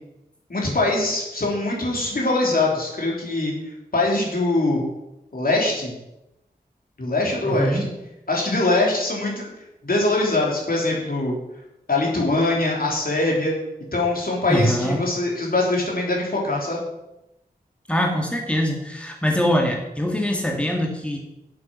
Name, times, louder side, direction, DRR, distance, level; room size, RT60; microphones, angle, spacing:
voice 1, 0.5-3.5 3.9-4.8 5.3-6.0 7.0-7.9 8.3-9.5 9.8-11.3 11.9-13.5 13.9-16.8, left 2 dB, 60° left, -2 dB, 3.5 m, -22 dB
voice 2, 7.4-7.9 14.5-15.0 17.9-21.2, equal, 5° left, 1 dB, 2.0 m, -23 dB
8.2 x 7.8 x 6.4 m, 0.91 s
cardioid pair, 40°, 17 cm